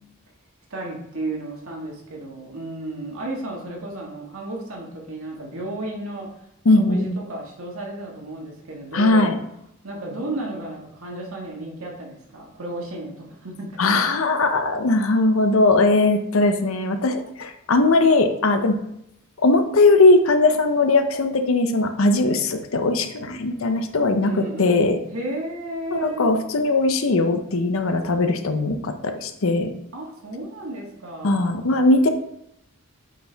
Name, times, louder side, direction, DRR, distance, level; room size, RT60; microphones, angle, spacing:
voice 1, 0.7-6.3 6.9-9.3 9.8-14.0 24.2-26.3 29.9-31.7, right 1 dB, 75° right, -2 dB, 1.8 m, -33 dB
voice 2, 6.6-7.2 8.9-9.4 13.8-18.8 19.4-25.0 25.9-29.7 31.2-32.1, left 2 dB, 70° left, 7 dB, 0.7 m, -19 dB
8.4 x 4.5 x 3.4 m, 0.78 s
head